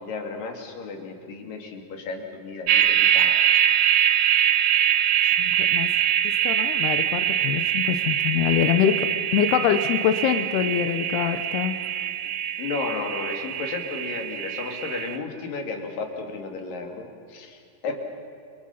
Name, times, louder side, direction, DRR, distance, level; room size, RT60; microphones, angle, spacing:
voice 1, 0.0-3.4 12.6-18.0, left 4 dB, 60° left, 3 dB, 4.2 m, -33 dB
sound 1, 2.7-15.2, right 11 dB, 75° right, 1.6 m, -23 dB
voice 2, 5.2-5.9 6.2-9.1 9.3-11.7, left 10 dB, 85° left, 8 dB, 3.0 m, -24 dB
30.0 x 28.0 x 5.7 m, 2.4 s
omnidirectional pair, 4.6 m